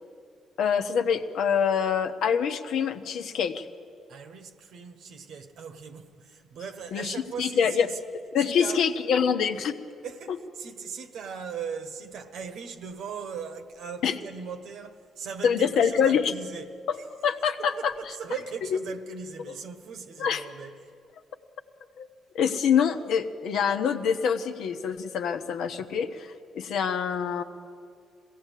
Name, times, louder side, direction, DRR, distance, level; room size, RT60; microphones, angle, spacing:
voice 1, 0.6-3.6 6.9-7.9 8.3-9.8 14.0-14.1 15.4-16.3 17.2-17.9 18.7-18.8 20.2-20.4 22.0-22.1 22.3-27.4, left 7 dB, 75° left, 1.0 m, -25 dB
voice 2, 4.1-8.0 8.4-8.9 10.0-17.1 17.6-20.9, right 6 dB, 75° right, 1.3 m, -39 dB
21.0 x 16.5 x 8.3 m
cardioid pair, 90°, 0 cm